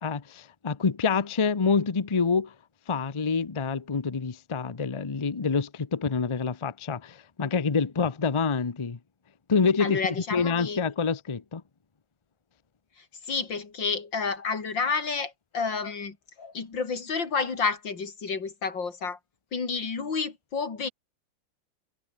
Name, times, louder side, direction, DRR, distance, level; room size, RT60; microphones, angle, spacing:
voice 1, 0.0-2.5 2.9-9.0 9.5-10.0 10.3-11.6, left 5 dB, 25° left, 0.6 m, -27 dB
voice 2, 9.8-10.8 13.2-19.2 19.5-20.9, left 5 dB, 90° left, 3.7 m, -30 dB
omnidirectional pair, 2.0 m